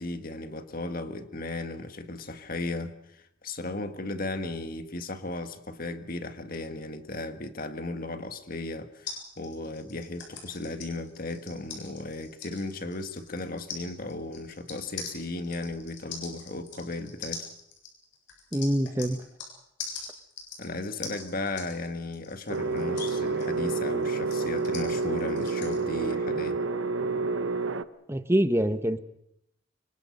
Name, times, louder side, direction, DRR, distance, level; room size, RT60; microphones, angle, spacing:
voice 1, 0.0-17.5 20.6-26.6, left 2 dB, 50° left, 8 dB, 1.7 m, -36 dB
sound 1, 9.1-19.5 19.8-25.8, left 5 dB, 65° left, 8.0 m, -42 dB
voice 2, 18.5-19.2 28.1-29.0, right 1 dB, 15° right, 10 dB, 1.0 m, -25 dB
sound 2, 22.5-27.8, right 3 dB, 90° right, 0.9 m, -29 dB
26.0 x 24.5 x 5.4 m, 0.78 s
head